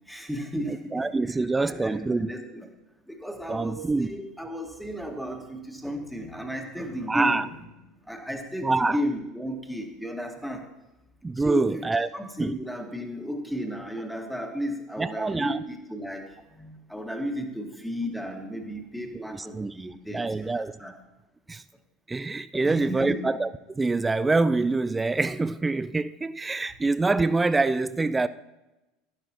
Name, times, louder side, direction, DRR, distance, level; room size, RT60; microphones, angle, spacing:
voice 1, 0.1-2.7 3.1-7.5 8.1-10.6 11.4-11.9 12.1-21.0 22.5-23.2, equal, ahead, 1.7 m, -34 dB
voice 2, 0.6-2.3 3.5-4.1 7.1-7.5 8.6-9.0 11.2-12.1 12.4-12.6 15.0-15.6 19.1-20.8 21.5-21.6 22.1-23.5 23.8-28.3, right 3 dB, 15° right, 0.4 m, -25 dB
11.5 x 11.5 x 2.9 m
figure-of-eight pair, 70°, 0 cm